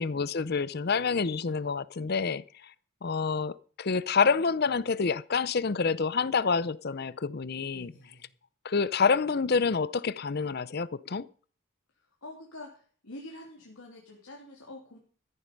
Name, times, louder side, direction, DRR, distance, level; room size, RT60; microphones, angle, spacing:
voice 1, 0.0-2.4 3.0-7.9 8.6-11.3, left 5 dB, 45° left, 0.6 m, -27 dB
voice 2, 7.7-8.3 12.0-15.0, left 1 dB, 85° left, 2.9 m, -47 dB
14.0 x 10.5 x 5.3 m
head